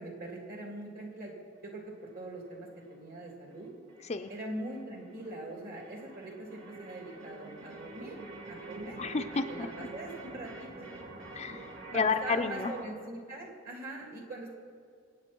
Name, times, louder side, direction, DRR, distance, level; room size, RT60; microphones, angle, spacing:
voice 1, 0.0-1.3 1.6-3.7 4.3-8.2 8.5-9.0 9.5-10.9 11.9-14.5, right 1 dB, 50° right, 0 dB, 3.0 m, -42 dB
sound 1, 1.5-12.8, right 2 dB, 85° right, 2.0 m, -47 dB
voice 2, 9.0-9.7 11.3-12.7, left 4 dB, 35° left, 7 dB, 0.5 m, -31 dB
25.0 x 8.5 x 4.5 m, 2.3 s
head